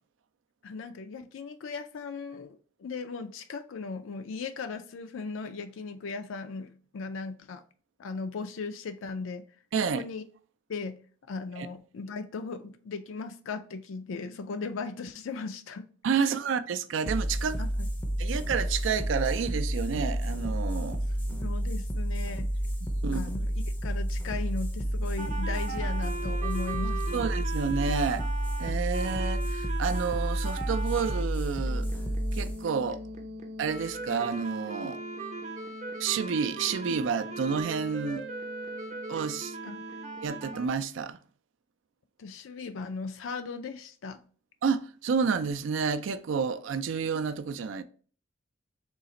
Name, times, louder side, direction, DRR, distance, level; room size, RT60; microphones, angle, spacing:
voice 1, 0.6-7.6 8.0-9.4 9.9-10.2 10.7-11.0 11.3-15.9 16.2-16.3 17.6-17.9 21.4-22.5 23.1-23.5 23.8-27.2 39.6-39.8 42.2-44.2, left 4 dB, 80° left, 0.4 m, -37 dB
voice 2, 9.7-10.0 11.6-11.7 16.0-17.7 18.2-21.0 21.3-21.4 23.0-23.3 27.1-28.2 28.6-31.9 32.3-33.0 33.6-35.0 36.0-38.3 39.1-39.6 40.2-41.2 44.6-47.8, right 6 dB, 70° right, 0.4 m, -30 dB
sound 1, 17.1-34.1, equal, 10° left, 0.5 m, -31 dB
sound 2, 25.2-31.2 31.7-40.7, right 3 dB, 35° right, 0.7 m, -38 dB
3.9 x 2.4 x 4.0 m
head